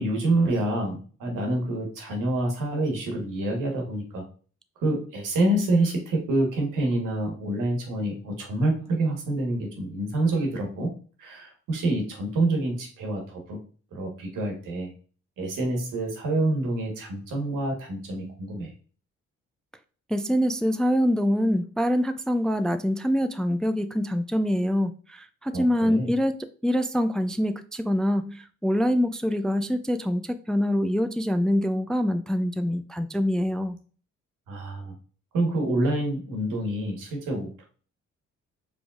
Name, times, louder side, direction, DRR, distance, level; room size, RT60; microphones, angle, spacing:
voice 1, 0.0-4.2 4.8-10.9 11.2-13.6 13.9-14.9 15.4-18.7 25.5-26.1 34.5-34.9 35.3-37.6, right 2 dB, 85° right, 1 dB, 1.4 m, -27 dB
voice 2, 20.1-26.3 26.6-33.8, equal, ahead, 9 dB, 0.3 m, -25 dB
4.9 x 3.3 x 2.4 m, 0.40 s
supercardioid pair, 60°, 31 cm